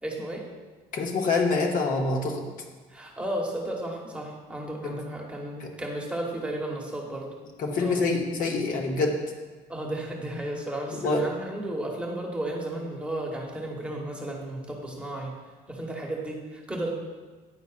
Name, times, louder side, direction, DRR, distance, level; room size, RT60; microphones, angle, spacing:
voice 1, 0.0-0.5 2.9-7.3 7.8-8.0 9.7-15.3 15.7-16.9, right 1 dB, 5° right, -2 dB, 1.0 m, -33 dB
voice 2, 0.9-2.5 4.8-5.0 5.6-5.7 7.6-9.2 11.0-11.3, left 3 dB, 55° left, 0 dB, 0.9 m, -26 dB
9.7 x 4.0 x 2.4 m, 1.4 s
cardioid pair, 110°, 17 cm